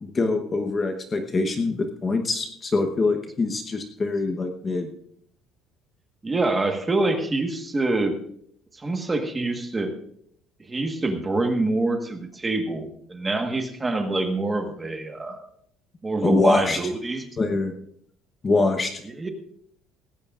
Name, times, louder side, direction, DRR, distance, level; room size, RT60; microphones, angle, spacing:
voice 1, 0.0-4.9 16.2-16.8 17.4-17.7 18.4-19.0, left 3 dB, 20° left, 6 dB, 1.0 m, -24 dB
voice 2, 6.2-8.2 8.7-9.9 10.6-15.4 16.0-17.2 19.2-19.3, right 2 dB, 10° right, 5 dB, 1.4 m, -25 dB
18.0 x 16.5 x 2.5 m, 0.68 s
cardioid pair, 180°, 0 cm